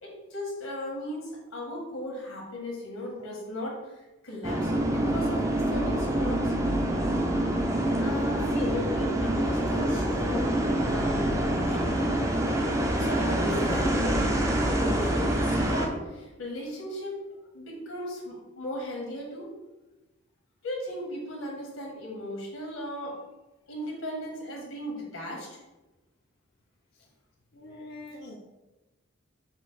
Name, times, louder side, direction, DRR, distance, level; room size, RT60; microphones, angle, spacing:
voice 1, 0.0-6.6 8.0-12.1 13.0-17.1 17.5-19.5 20.6-23.1 23.7-25.6, equal, 90° left, -2 dB, 1.3 m, -37 dB
sound 1, 4.4-15.9, right 1 dB, 15° right, 0.4 m, -26 dB
voice 2, 27.5-28.4, left 2 dB, 50° left, -2 dB, 0.5 m, -43 dB
5.0 x 2.1 x 4.0 m, 1.1 s
head